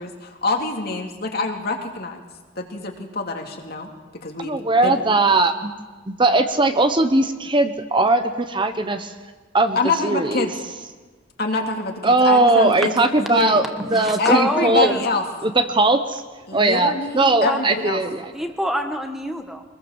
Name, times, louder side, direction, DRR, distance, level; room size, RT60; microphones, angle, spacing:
voice 1, 0.0-2.2 2.6-3.9 4.2-5.0 9.8-10.5 11.4-12.9 13.3-13.6 14.2-15.2 16.5-18.0, left 3 dB, 55° left, 3 dB, 2.6 m, -25 dB
voice 2, 4.4-5.7 6.1-9.1 9.5-9.8 10.0-10.5 12.0-14.9 15.4-16.2 16.5-18.3, right 2 dB, 25° right, 8 dB, 1.0 m, -19 dB
voice 3, 13.7-15.0 17.4-17.6 18.3-19.6, equal, ahead, 4 dB, 1.5 m, -26 dB
24.0 x 21.0 x 7.3 m, 1.3 s
head